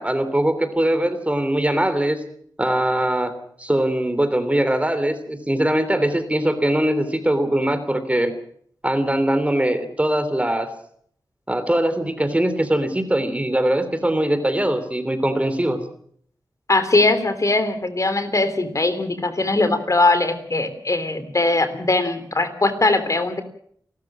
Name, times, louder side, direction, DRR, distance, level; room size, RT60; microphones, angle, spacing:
voice 1, 0.0-2.2 2.6-8.3 8.8-10.7 11.5-15.8, right 1 dB, 15° right, 10 dB, 3.2 m, -21 dB
voice 2, 16.7-23.4, left 2 dB, 45° left, 10 dB, 3.2 m, -20 dB
28.5 x 13.5 x 7.4 m, 0.63 s
wide cardioid pair, 60°, 8 cm